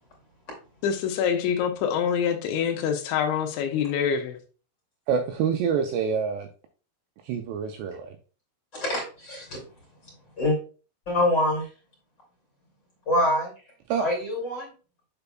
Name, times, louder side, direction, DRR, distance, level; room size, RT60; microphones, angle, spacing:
voice 1, 0.8-4.4, left 7 dB, 80° left, 3.0 m, -25 dB
voice 2, 5.1-6.5 7.2-8.2 13.9-14.1, right 6 dB, 90° right, 2.5 m, -26 dB
voice 3, 8.7-9.6 10.4-10.6 11.1-11.7 13.1-13.5 14.0-14.7, left 1 dB, 35° left, 2.0 m, -25 dB
6.9 x 6.7 x 2.3 m
omnidirectional pair, 5.5 m